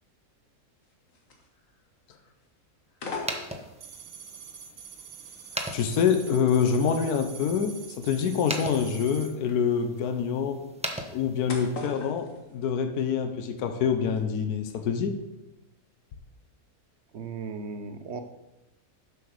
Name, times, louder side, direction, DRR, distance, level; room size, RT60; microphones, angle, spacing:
sound 1, 0.8-1.9 2.1-2.5 2.9-4.1 4.7-13.3 13.6-14.2 14.6-14.8, left 3 dB, 60° left, 1.7 m, -43 dB
sound 2, 3.1-11.8, right 1 dB, 5° right, 0.5 m, -40 dB
sound 3, 3.8-9.3, right 7 dB, 80° right, 1.5 m, -45 dB
voice 1, 5.7-10.6 11.1-15.2, left 7 dB, 80° left, 8 dB, 1.3 m, -26 dB
voice 2, 17.1-18.2, right 4 dB, 55° right, 8 dB, 0.9 m, -36 dB
7.5 x 5.9 x 6.4 m, 0.95 s
omnidirectional pair, 1.6 m